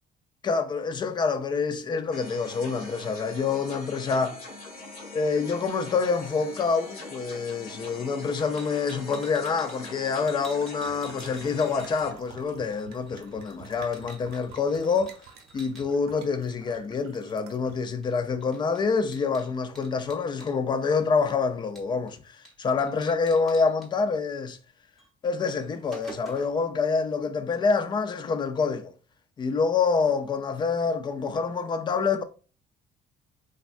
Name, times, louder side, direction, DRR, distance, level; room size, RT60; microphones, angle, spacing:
voice 1, 0.4-4.4 5.1-15.1 15.5-22.2 22.6-24.6 25.2-28.9 29.4-32.2, left 5 dB, 30° left, 0.4 m, -26 dB
sound 1, 2.1-12.1, left 2 dB, 65° left, 1.6 m, -43 dB
sound 2, 8.6-12.3 12.6-15.9 18.0-18.1 18.4-20.6 21.8-22.1 22.4-22.5 22.8-23.9 25.0-25.1 25.5-26.6, right 2 dB, ahead, 0.9 m, -49 dB
sound 3, 10.1-17.9, right 6 dB, 90° right, 0.7 m, -50 dB
3.3 x 2.3 x 2.4 m
cardioid pair, 125°, 16 cm